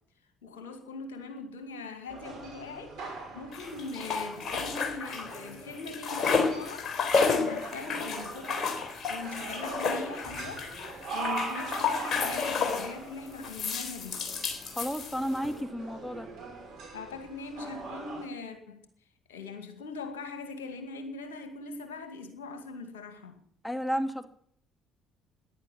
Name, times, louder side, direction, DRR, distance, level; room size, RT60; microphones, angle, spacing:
voice 1, 0.4-8.8 9.1-10.7 11.1-14.2 16.9-18.8 19.3-23.4, left 3 dB, 80° left, 2.2 m, -41 dB
sound 1, 2.1-18.2, right 3 dB, 65° right, 6.0 m, -42 dB
sound 2, 3.5-5.5 5.7-13.0 13.4-15.5, left 5 dB, 50° left, 3.8 m, -31 dB
voice 2, 14.7-16.3 23.6-24.3, equal, 10° left, 2.2 m, -32 dB
15.0 x 10.5 x 7.5 m
hypercardioid pair, 50°, 0 cm